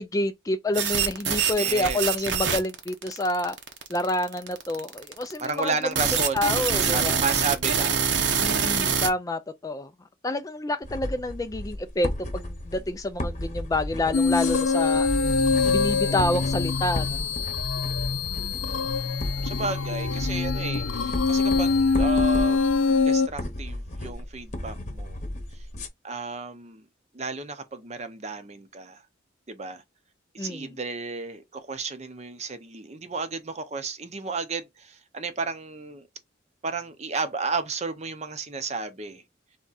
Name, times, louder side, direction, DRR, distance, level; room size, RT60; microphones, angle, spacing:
voice 1, 0.0-3.6 3.9-5.7 6.3-7.2 8.4-9.9 10.2-15.1 15.7-17.2 30.4-30.7, left 1 dB, 15° left, 0.3 m, -28 dB
sound 1, 0.7-9.1, right 6 dB, 60° right, 0.9 m, -25 dB
voice 2, 1.6-2.0 5.4-6.5 6.7-8.1 18.1-18.2 19.4-25.2 25.5-25.7 26.0-26.9 27.1-29.0 29.5-29.8 30.3-36.1 36.6-39.2, right 4 dB, 35° right, 0.7 m, -33 dB
sound 2, 10.8-25.9, left 1 dB, 35° left, 0.9 m, -34 dB
sound 3, 14.1-23.3, left 4 dB, 85° left, 0.6 m, -24 dB
3.6 x 3.5 x 4.1 m
head